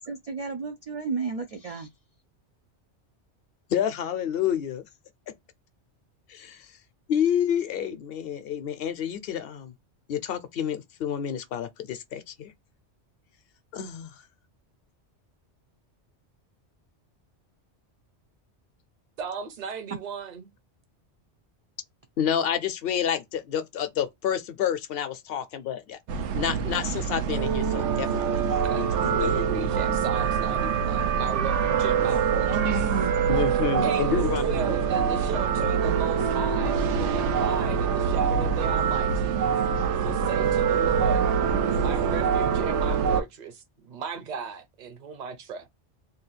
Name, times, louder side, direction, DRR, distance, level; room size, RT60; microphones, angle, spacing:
voice 1, 0.0-1.9 32.5-33.1, right 6 dB, 65° right, 0.3 m, -32 dB
voice 2, 3.7-4.8 6.3-6.7 7.1-9.7 10.1-12.5 13.7-14.1 22.2-26.0 26.3-28.4 28.8-29.5 29.9-30.0 33.3-34.8, left 9 dB, 65° left, 0.7 m, -29 dB
voice 3, 19.2-20.5 28.6-32.7 33.8-39.4 39.9-41.2 41.8-45.7, right 6 dB, 45° right, 0.7 m, -36 dB
sound 1, 26.1-43.2, right 7 dB, 85° right, 0.9 m, -25 dB
2.7 x 2.3 x 3.9 m
omnidirectional pair, 1.2 m